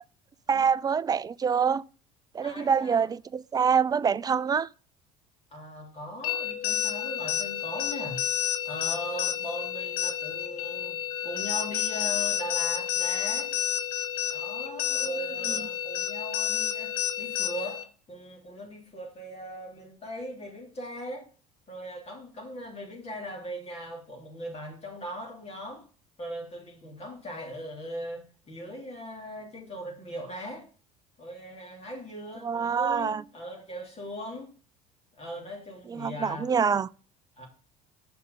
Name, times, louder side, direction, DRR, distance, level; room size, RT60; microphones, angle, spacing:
voice 1, 0.5-1.8 2.3-4.7 15.5-15.6 32.4-33.2 35.9-36.9, right 6 dB, 20° right, 0.4 m, -25 dB
voice 2, 2.4-3.1 5.5-8.3 8.6-11.0 11.2-13.5 14.3-21.3 21.7-25.9 26.2-30.7 31.2-34.5 35.1-36.5 37.4-37.5, equal, 35° left, 3.0 m, -39 dB
sound 1, 6.2-17.8, left 10 dB, 80° left, 0.9 m, -30 dB
6.8 x 5.3 x 5.2 m
hypercardioid pair, 75°, 19 cm